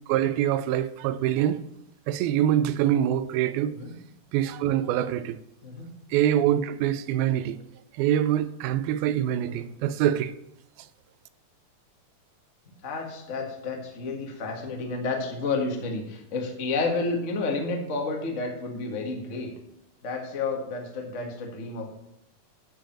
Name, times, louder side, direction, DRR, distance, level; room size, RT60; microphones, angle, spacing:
voice 1, 0.1-1.6 2.1-3.8 4.3-5.4 6.1-7.6 8.0-10.3, right 11 dB, 90° right, 2.5 m, -24 dB
voice 2, 12.8-19.5 20.0-21.9, left 3 dB, 35° left, 1.2 m, -30 dB
11.5 x 5.0 x 7.4 m
omnidirectional pair, 4.2 m